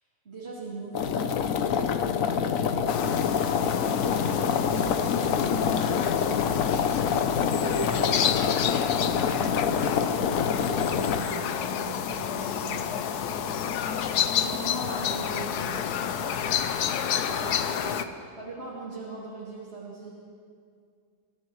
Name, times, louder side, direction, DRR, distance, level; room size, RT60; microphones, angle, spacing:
voice 1, 0.2-1.1 1.5-6.8 7.6-8.2 8.5-13.7 14.4-16.3 17.3-20.1, right 2 dB, 30° right, -8 dB, 2.8 m, -40 dB
sound 1, 0.9-11.2, left 7 dB, 85° left, 0.7 m, -26 dB
sound 2, 2.9-18.0, left 8 dB, 65° left, 1.0 m, -29 dB
29.5 x 15.0 x 3.1 m, 2.2 s
omnidirectional pair, 2.3 m